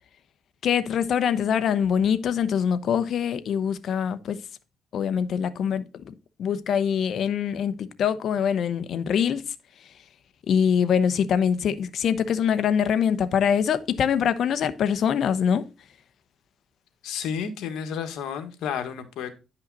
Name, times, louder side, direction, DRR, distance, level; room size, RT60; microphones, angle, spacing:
voice 1, 0.6-4.4 4.9-6.1 6.4-9.4 10.5-15.7, left 8 dB, 65° left, 0.9 m, -24 dB
voice 2, 17.0-19.3, left 7 dB, 85° left, 1.7 m, -31 dB
10.5 x 5.6 x 4.1 m
cardioid pair, 90°, 0 cm